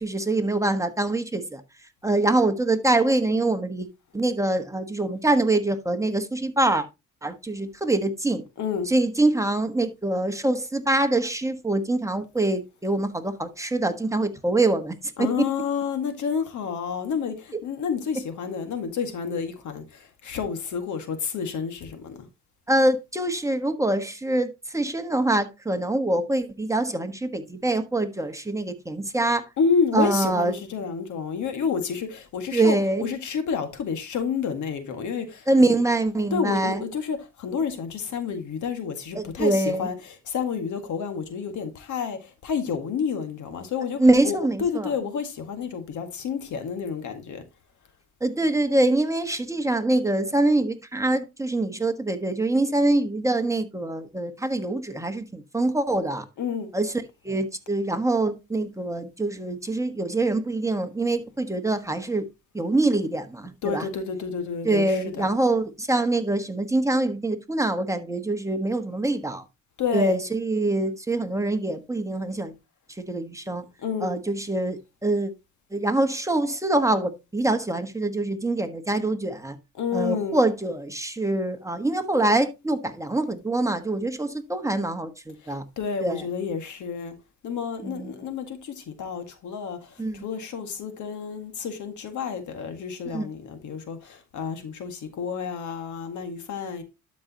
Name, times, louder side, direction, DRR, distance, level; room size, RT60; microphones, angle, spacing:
voice 1, 0.0-1.6 2.0-3.9 4.1-6.9 7.2-8.4 8.9-15.4 22.7-29.5 29.9-30.5 32.5-33.1 35.5-36.8 39.1-39.9 44.0-44.9 48.2-56.2 56.7-56.9 57.2-62.2 62.5-63.9 64.6-69.4 69.9-72.5 73.0-73.6 74.0-75.3 75.7-79.6 79.9-85.6 86.0-86.2 87.8-88.1 90.0-90.2 93.1-93.3, right 2 dB, 10° right, 1.4 m, -24 dB
voice 2, 8.6-8.9 15.2-22.2 29.6-35.7 36.3-47.4 56.4-56.7 63.6-65.3 69.8-70.2 73.8-74.2 79.8-80.4 85.4-87.1 87.4-96.8, left 6 dB, 75° left, 1.9 m, -30 dB
12.0 x 5.3 x 2.9 m
cardioid pair, 90°, 30 cm